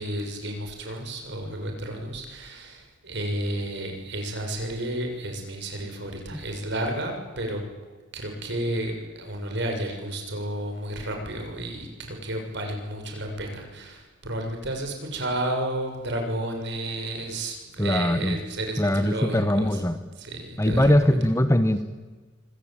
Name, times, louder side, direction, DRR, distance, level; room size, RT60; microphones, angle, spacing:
voice 1, 0.0-7.6 8.1-19.7 20.2-20.9, right 1 dB, 60° right, 3 dB, 6.6 m, -32 dB
voice 2, 17.8-18.4 18.8-20.0 20.6-21.8, left 1 dB, 15° left, 11 dB, 1.2 m, -21 dB
26.0 x 25.0 x 8.9 m, 1.4 s
head